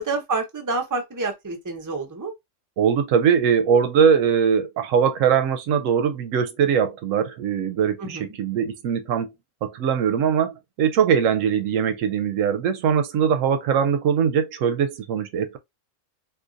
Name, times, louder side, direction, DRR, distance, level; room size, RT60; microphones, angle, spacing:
voice 1, 0.0-2.3 8.0-8.3, right 3 dB, 20° right, 0.7 m, -28 dB
voice 2, 2.8-9.3 9.6-15.6, right 7 dB, 80° right, 0.9 m, -21 dB
2.7 x 2.4 x 3.8 m
omnidirectional pair, 1.3 m